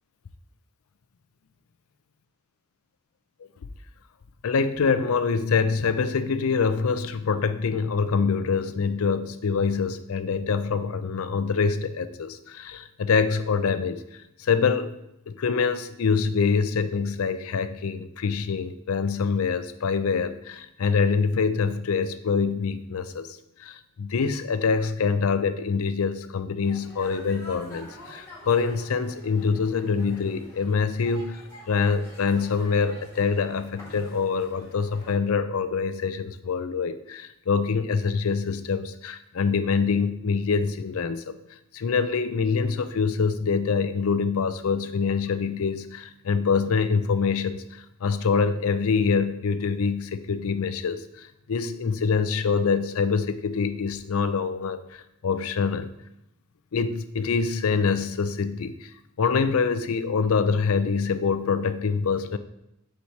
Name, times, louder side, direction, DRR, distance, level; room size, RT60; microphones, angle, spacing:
voice 1, 4.4-14.9 15.3-41.4 41.7-55.9 56.7-58.9 59.2-62.4, left 5 dB, 75° left, 11 dB, 0.5 m, -25 dB
sound 1, 26.6-35.2, left 1 dB, 15° left, 1.6 m, -47 dB
4.8 x 4.2 x 5.8 m, 0.82 s
head